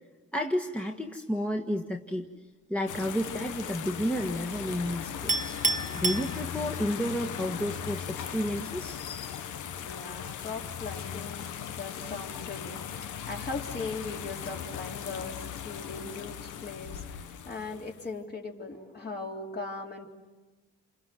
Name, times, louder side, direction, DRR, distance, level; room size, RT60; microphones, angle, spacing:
voice 1, 0.3-2.3 2.7-5.6 5.9-9.0, equal, 5° left, 1 dB, 1.7 m, -31 dB
sound 1, 2.9-18.1, left 9 dB, 80° left, 1.3 m, -38 dB
Chink clink, 5.3-7.0, right 3 dB, 25° right, 1.3 m, -30 dB
voice 2, 9.8-20.1, left 3 dB, 35° left, 0 dB, 3.7 m, -39 dB
28.0 x 27.0 x 7.8 m, 1.2 s
cardioid pair, 90°, 30 cm